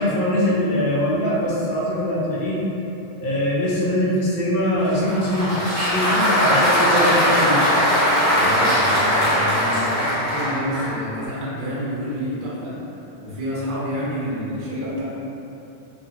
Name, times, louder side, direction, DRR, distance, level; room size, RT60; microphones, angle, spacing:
voice 1, 0.0-2.6 3.2-5.6 5.9-7.7, equal, 55° left, -8 dB, 0.7 m, -22 dB
Applause, 4.9-11.0, equal, 15° right, 0.7 m, -20 dB
voice 2, 8.3-12.8 13.2-15.0, equal, 55° right, -8 dB, 0.7 m, -29 dB
2.6 x 2.1 x 2.8 m, 2.9 s
omnidirectional pair, 1.3 m